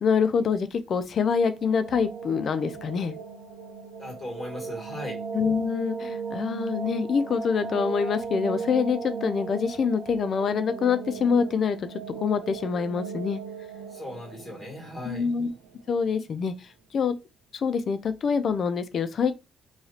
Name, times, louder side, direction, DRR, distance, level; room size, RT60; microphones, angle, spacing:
voice 1, 0.0-3.2 5.3-11.9 12.2-13.4 15.1-15.5 15.9-16.5 16.9-17.2 17.5-19.4, left 6 dB, 55° left, 0.4 m, -25 dB
sound 1, 1.4-16.2, right 5 dB, 85° right, 0.6 m, -37 dB
voice 2, 4.0-5.2 13.9-15.3, left 1 dB, 25° left, 2.1 m, -37 dB
3.1 x 2.8 x 2.7 m
cardioid pair, 90°, 0 cm